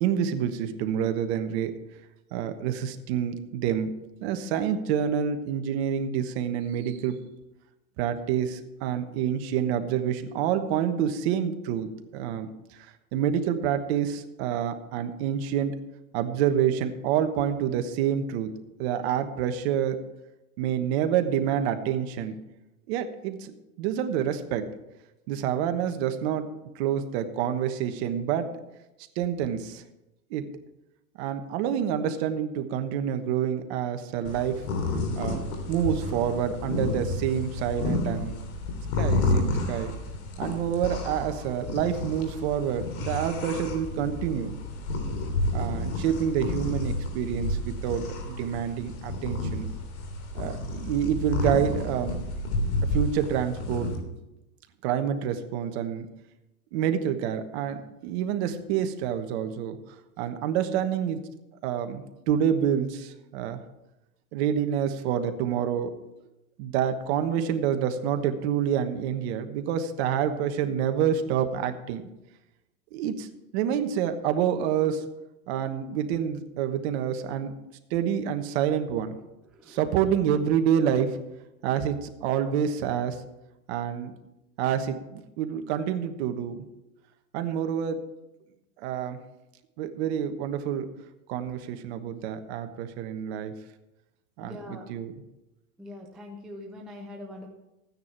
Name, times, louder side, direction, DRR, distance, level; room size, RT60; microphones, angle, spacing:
voice 1, 0.0-1.7 2.3-3.9 4.2-7.2 8.0-15.7 16.1-18.5 18.8-20.0 20.6-22.4 22.9-24.7 25.3-26.5 26.7-28.5 29.2-29.8 30.3-30.5 31.2-34.6 35.2-38.4 39.0-39.9 40.4-44.6 45.5-49.7 50.3-52.2 52.9-53.9 54.8-56.1 56.7-59.8 60.2-61.2 61.6-63.6 64.3-65.9 66.6-72.0 72.9-75.0 75.5-77.5 77.9-79.2 79.7-81.2 81.6-83.2 83.7-84.1 84.6-86.6 87.3-88.0 88.8-89.2 89.8-90.9 91.3-93.6 94.4-95.1, right 9 dB, 45° right, 8 dB, 1.2 m, -28 dB
sound 1, 34.2-53.9, left 2 dB, 70° left, 3.4 m, -30 dB
voice 2, 79.5-80.1 94.4-94.9 95.8-97.5, left 1 dB, ahead, -1 dB, 0.4 m, -43 dB
14.5 x 9.6 x 4.6 m, 0.96 s
supercardioid pair, 140°, 45 cm